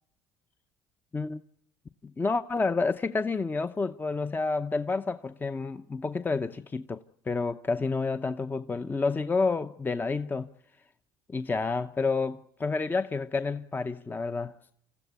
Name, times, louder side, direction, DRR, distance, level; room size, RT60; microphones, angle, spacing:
voice 1, 2.2-10.5 11.3-14.5, left 4 dB, 20° left, 0.8 m, -29 dB
27.5 x 15.0 x 8.3 m
supercardioid pair, 95°, 10 cm